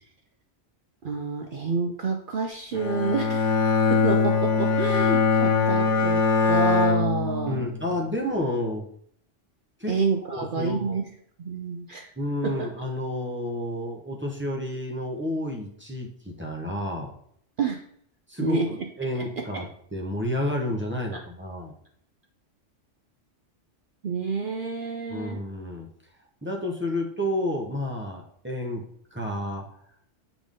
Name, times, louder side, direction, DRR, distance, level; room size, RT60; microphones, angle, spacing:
voice 1, 1.0-3.6 3.9-7.7 9.9-11.0 11.4-12.1 12.4-12.8 17.6-17.8 18.4-18.7 19.2-19.6 21.1-21.2 24.0-25.4, right 4 dB, 55° right, 4 dB, 0.6 m, -28 dB
Bowed string instrument, 2.7-8.0, left 4 dB, 70° left, 1.3 m, -22 dB
voice 2, 7.5-8.8 9.8-10.9 12.2-17.1 18.3-21.7 25.1-25.9 26.4-28.8 29.1-29.6, left 1 dB, 10° right, -1 dB, 0.9 m, -30 dB
7.0 x 4.0 x 3.6 m, 0.66 s
omnidirectional pair, 1.3 m